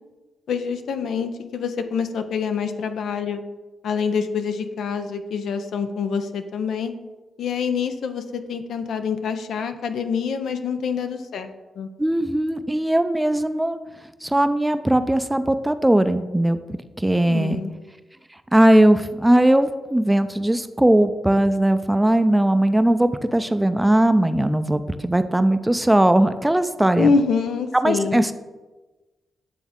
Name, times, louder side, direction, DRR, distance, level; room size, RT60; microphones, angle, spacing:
voice 1, 0.5-3.4 3.8-6.9 7.4-11.9 17.1-17.7 27.0-28.3, left 5 dB, 80° left, 8 dB, 0.5 m, -26 dB
voice 2, 12.0-13.8 14.2-16.6 17.0-17.6 18.5-27.1 27.8-28.3, right 1 dB, 10° right, 11 dB, 0.4 m, -19 dB
9.2 x 3.5 x 3.6 m, 1.2 s
cardioid pair, 70°, 0 cm